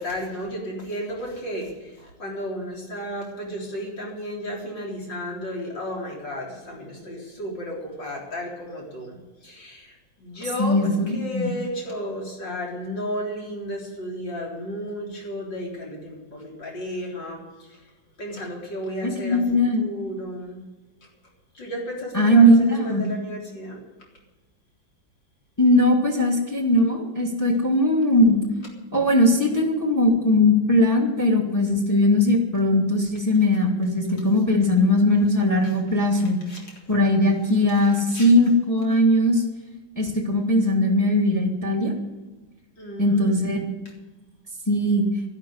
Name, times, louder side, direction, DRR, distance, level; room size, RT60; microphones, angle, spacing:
voice 1, 0.0-17.8 18.2-19.4 19.8-20.6 21.5-23.8 36.4-36.8 37.7-38.3 42.8-43.4, equal, 70° left, -1 dB, 4.6 m, -33 dB
voice 2, 10.6-11.1 11.3-11.5 19.0-19.8 22.1-23.1 25.6-28.4 28.9-36.4 36.9-39.4 40.0-42.0 43.0-43.6 44.7-45.1, left 1 dB, 10° left, 2 dB, 2.4 m, -19 dB
12.0 x 11.5 x 9.6 m, 1.2 s
omnidirectional pair, 2.1 m